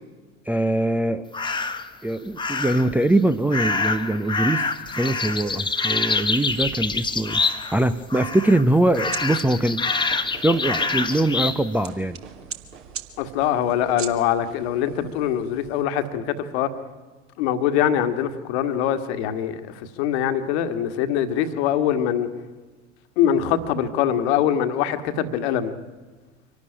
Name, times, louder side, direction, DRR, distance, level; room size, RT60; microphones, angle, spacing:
voice 1, 0.5-1.3 2.0-4.7 5.0-7.4 7.7-9.8 10.4-12.2, right 1 dB, 5° right, 8 dB, 0.5 m, -22 dB
sound 1, 1.3-1.9 2.4-2.9 3.5-7.8 8.1-8.6 8.9-11.6, left 4 dB, 10° left, 1.3 m, -26 dB
sound 2, 7.8-15.8, right 8 dB, 35° right, 1.6 m, -42 dB
Fireworks, 9.8-15.3, right 6 dB, 60° right, 3.1 m, -46 dB
voice 2, 13.2-16.7 17.4-22.3 23.2-25.7, left 9 dB, 55° left, 10 dB, 1.6 m, -23 dB
25.0 x 12.0 x 9.9 m, 1.3 s
figure-of-eight pair, 70°, 38 cm